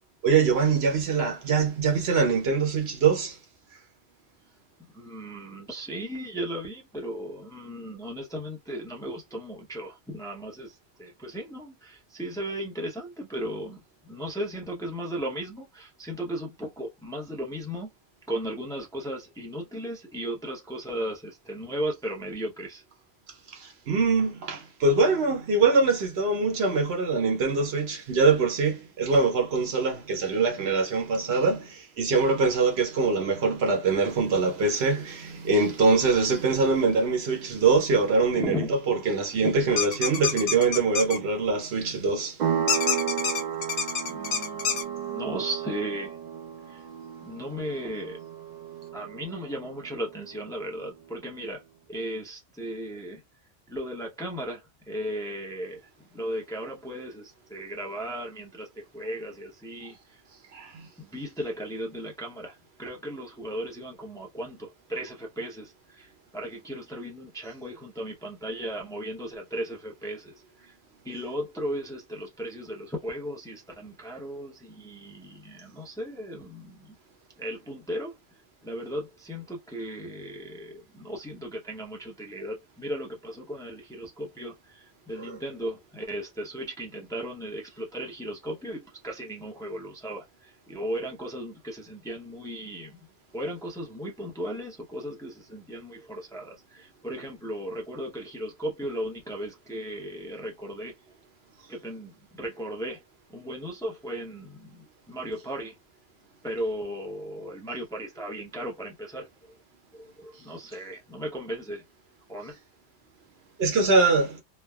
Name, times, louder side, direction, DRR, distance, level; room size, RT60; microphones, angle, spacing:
voice 1, 0.2-3.4 23.5-38.5 38.9-42.4 60.5-60.9 85.1-85.4 113.6-114.4, right 4 dB, 70° right, 1.0 m, -23 dB
voice 2, 4.9-17.9 18.3-22.8 38.3-38.8 39.4-39.6 44.0-46.2 46.7-46.9 47.2-48.2 48.9-51.6 51.9-53.2 53.7-60.2 61.0-70.8 71.0-76.9 77.4-78.2 78.6-93.1 93.3-100.9 101.7-103.0 103.3-105.7 106.4-109.5 109.9-111.8 112.3-112.6, equal, 5° left, 0.6 m, -36 dB
sound 1, 39.8-41.2 42.7-44.8, left 6 dB, 75° left, 0.9 m, -27 dB
sound 2, 42.4-50.7, right 8 dB, 55° right, 0.5 m, -33 dB
3.2 x 2.0 x 2.2 m
omnidirectional pair, 1.1 m